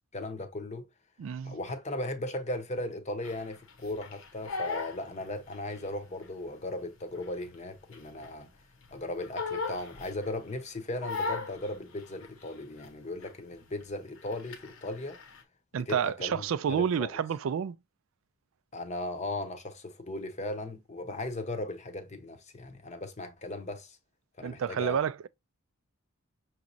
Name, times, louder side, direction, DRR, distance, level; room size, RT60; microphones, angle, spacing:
voice 1, 0.1-0.9 1.4-8.5 8.9-15.2 15.7-17.1 18.7-24.0 24.4-25.0, left 2 dB, 35° left, 0.8 m, -37 dB
voice 2, 1.2-1.6 15.7-17.8 24.4-25.3, right 7 dB, 70° right, 0.3 m, -29 dB
Crying sobbing, 3.2-5.9 6.2-8.5 8.8-10.5 11.0-12.9 13.2-13.5 13.8-15.4, left 3 dB, 75° left, 1.0 m, -38 dB
6.0 x 3.0 x 2.6 m
head